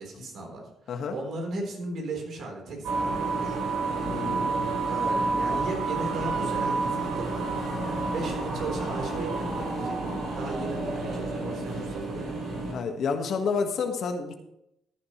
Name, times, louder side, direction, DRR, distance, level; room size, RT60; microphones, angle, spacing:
voice 1, 0.0-3.6 4.9-10.0 10.3-12.4, right 2 dB, 65° right, 1 dB, 4.1 m, -36 dB
sound 1, 2.8-12.7, right 3 dB, 85° right, 4.8 m, -29 dB
voice 2, 4.0-4.7 5.5-5.6 12.7-14.3, left 5 dB, 65° left, 5 dB, 1.6 m, -30 dB
15.0 x 9.8 x 3.2 m, 0.79 s
cardioid pair, 90°, 0 cm